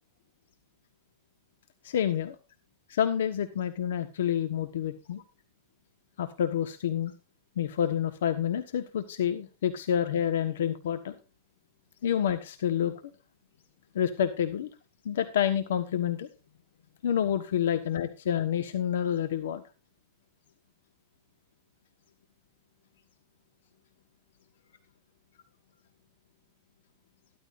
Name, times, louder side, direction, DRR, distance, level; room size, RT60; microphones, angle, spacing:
voice 1, 1.8-2.3 2.9-5.2 6.2-7.1 7.6-11.2 12.0-12.9 13.9-14.7 15.0-16.3 17.0-19.6, left 9 dB, 85° left, 9 dB, 1.2 m, -28 dB
14.0 x 13.5 x 2.5 m, 0.31 s
supercardioid pair, 145°, 0 cm